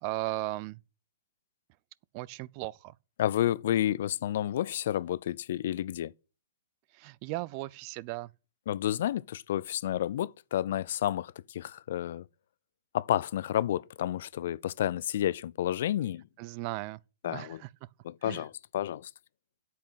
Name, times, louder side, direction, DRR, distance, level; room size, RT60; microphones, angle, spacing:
voice 1, 0.0-0.8 2.1-2.9 6.9-8.3 16.4-17.0 17.2-17.7 18.2-18.4, right 18 dB, 40° right, 0.5 m, -36 dB
voice 2, 3.2-6.1 8.7-12.2 12.9-16.2 17.2-17.6 18.0-19.1, left 12 dB, 60° left, 0.5 m, -30 dB
8.5 x 8.5 x 8.1 m
figure-of-eight pair, 115°, 0 cm